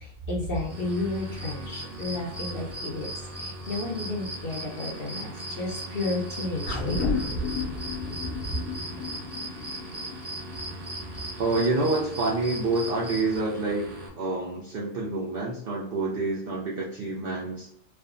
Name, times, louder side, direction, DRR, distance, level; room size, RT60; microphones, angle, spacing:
voice 1, 0.0-3.1 3.4-7.1, left 2 dB, 55° left, -3 dB, 0.7 m, -32 dB
sound 1, 0.5-13.4, right 1 dB, 5° right, 0.6 m, -40 dB
sound 2, 0.7-14.1, right 1 dB, 90° right, 1.1 m, -41 dB
sound 3, 6.6-11.3 11.6-11.7, left 3 dB, 75° left, 1.1 m, -32 dB
voice 2, 11.4-13.9 14.2-17.7, right 3 dB, 70° right, -3 dB, 0.5 m, -27 dB
3.3 x 2.0 x 2.4 m, 0.74 s
omnidirectional pair, 1.4 m